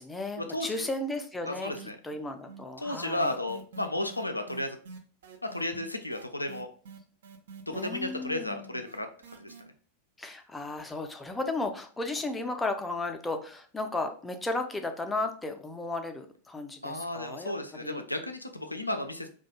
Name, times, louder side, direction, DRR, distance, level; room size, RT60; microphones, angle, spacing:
voice 1, 0.0-3.3 7.7-8.8 10.2-18.0, left 2 dB, 10° left, 6 dB, 0.4 m, -35 dB
voice 2, 1.5-2.0 2.8-4.8 5.5-6.7 7.7-9.1 9.4-9.5 16.8-19.3, left 1 dB, 85° left, 6 dB, 0.3 m, -33 dB
sound 1, 1.7-2.2 2.5-9.6, right 5 dB, 60° right, 0.4 m, -47 dB
2.3 x 2.2 x 2.9 m, 0.43 s
figure-of-eight pair, 90°, 0 cm